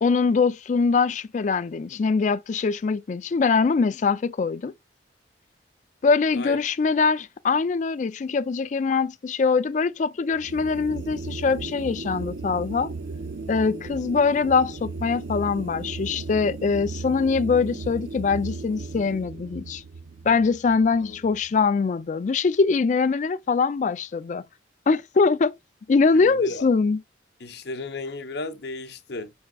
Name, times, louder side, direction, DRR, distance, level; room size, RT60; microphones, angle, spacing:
voice 1, 0.0-4.7 6.0-12.9 13.5-19.8 20.2-24.4 24.9-25.5 25.9-27.0, left 4 dB, 40° left, 0.3 m, -23 dB
sound 1, 10.3-21.7, right 3 dB, 65° right, 0.6 m, -36 dB
voice 2, 26.1-26.6 27.4-29.3, left 2 dB, 55° left, 0.7 m, -34 dB
5.8 x 3.5 x 2.3 m
head